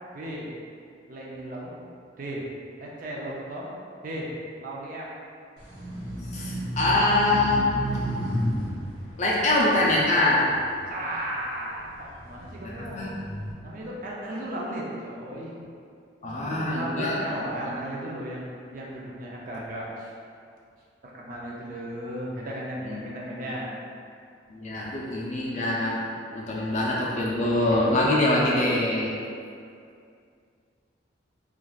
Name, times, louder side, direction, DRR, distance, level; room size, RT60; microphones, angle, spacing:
voice 1, 0.1-0.5 1.1-1.8 2.2-3.7 4.0-4.3 4.6-5.1 10.9-13.0 13.6-15.5 16.2-20.1 21.0-23.7, right 1 dB, 45° right, -4 dB, 0.4 m, -35 dB
sound 1, 5.6-11.1 11.7-13.5, right 1 dB, 60° right, 0.9 m, -32 dB
voice 2, 6.3-7.7 9.2-10.4 12.6-13.1 16.2-17.2 17.7-17.8 22.8-23.4 24.5-26.0 26.3-29.1, left 2 dB, 35° left, -4 dB, 0.4 m, -24 dB
3.1 x 2.4 x 2.3 m, 2.3 s
head